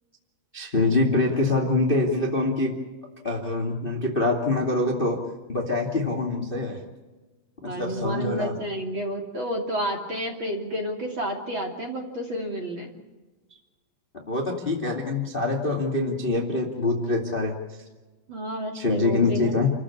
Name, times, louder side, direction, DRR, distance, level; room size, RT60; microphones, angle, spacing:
voice 1, 0.5-2.7 3.2-5.2 5.5-6.8 7.6-8.5 14.1-17.5 18.7-19.7, left 2 dB, 20° left, 0 dB, 1.5 m, -25 dB
voice 2, 7.6-12.9 18.3-19.5, equal, 30° right, 1 dB, 2.7 m, -30 dB
29.0 x 15.0 x 8.5 m, 1.2 s
omnidirectional pair, 5.2 m